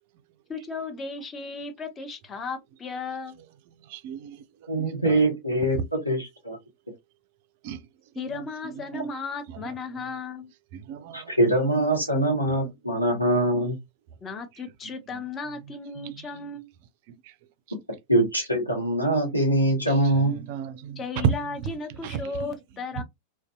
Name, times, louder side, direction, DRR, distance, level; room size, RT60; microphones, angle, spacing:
voice 1, 0.5-3.4 8.2-10.5 14.2-16.7 21.0-23.0, left 4 dB, 20° left, 0.6 m, -35 dB
voice 2, 3.8-5.3 5.6-5.9 7.6-7.9 8.3-9.1 9.5-10.1 10.7-11.9 12.1-12.7 15.1-15.2 16.0-16.3 17.2-17.3 19.9-21.7 22.0-22.5 23.0-23.1, right 8 dB, 50° right, 0.3 m, -34 dB
voice 3, 4.7-5.8 6.0-6.6 11.1-13.8 18.1-20.4, right 1 dB, 90° left, 0.9 m, -23 dB
2.5 x 2.1 x 2.3 m
figure-of-eight pair, 90°, 0 cm